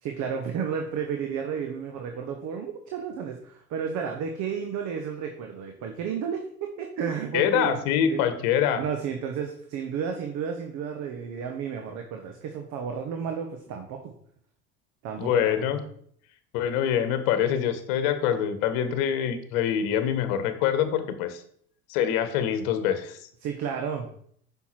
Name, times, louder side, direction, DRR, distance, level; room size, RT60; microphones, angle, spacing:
voice 1, 0.0-7.8 8.1-8.3 8.8-14.1 15.0-15.8 23.4-24.2, right 7 dB, 40° right, 4 dB, 1.2 m, -32 dB
voice 2, 7.3-8.8 15.2-15.8 16.5-21.4 21.9-23.3, left 9 dB, 45° left, 10 dB, 1.4 m, -25 dB
9.7 x 5.9 x 4.6 m, 0.63 s
figure-of-eight pair, 75°, 46 cm